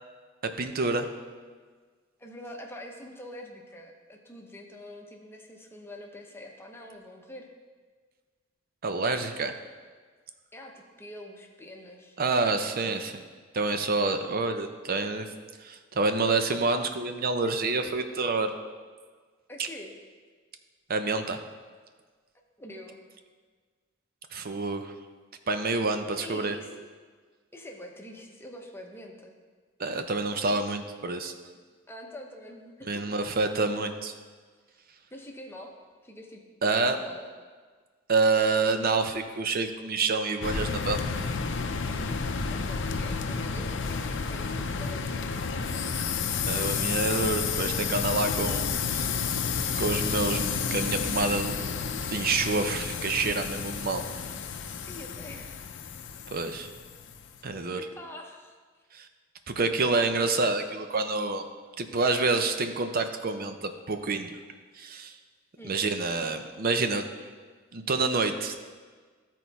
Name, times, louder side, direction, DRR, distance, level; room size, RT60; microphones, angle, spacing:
voice 1, 0.4-1.1 8.8-9.5 12.2-13.1 13.5-15.3 15.6-18.5 19.6-19.7 20.9-21.4 24.3-24.9 25.5-26.6 29.8-31.3 32.9-34.1 36.6-37.0 38.1-41.0 46.5-49.2 49.8-51.7 52.1-54.0 56.3-56.7 57.4-57.8 58.9-59.1 59.5-61.4 61.8-64.3 64.8-65.1 65.6-67.0 67.7-68.7, right 3 dB, 50° right, 7 dB, 0.6 m, -28 dB
voice 2, 2.2-7.5 10.5-13.0 19.5-19.9 22.6-23.0 26.1-26.8 27.5-29.3 31.9-33.0 34.7-34.8 35.1-35.8 36.0-36.4 37.0-37.3 41.9-45.3 54.8-55.6 57.5-58.6 65.6-65.8, left 1 dB, 10° left, 1 dB, 0.9 m, -45 dB
sound 1, 40.4-57.2, left 5 dB, 65° left, 0.6 m, -31 dB
13.0 x 4.5 x 4.1 m, 1.5 s
head